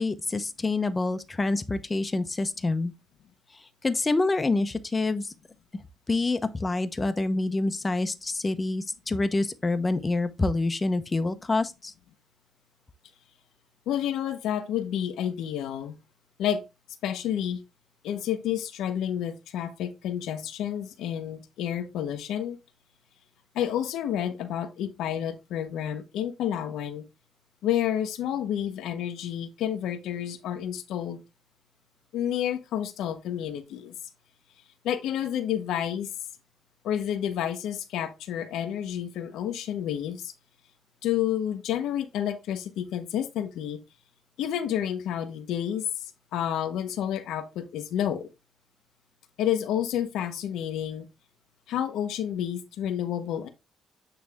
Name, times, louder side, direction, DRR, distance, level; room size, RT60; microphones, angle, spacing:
voice 1, 0.0-2.9 3.5-5.3 6.1-11.9, left 2 dB, 25° left, 0.8 m, -27 dB
voice 2, 13.9-15.9 16.4-16.6 17.0-17.6 18.0-22.6 23.5-27.0 27.6-31.2 32.1-33.9 34.8-36.1 36.8-40.3 41.0-43.8 44.4-48.3 49.4-51.1 51.7-53.5, left 10 dB, 85° left, 1.0 m, -30 dB
8.8 x 3.4 x 3.5 m
cardioid pair, 90°, 0 cm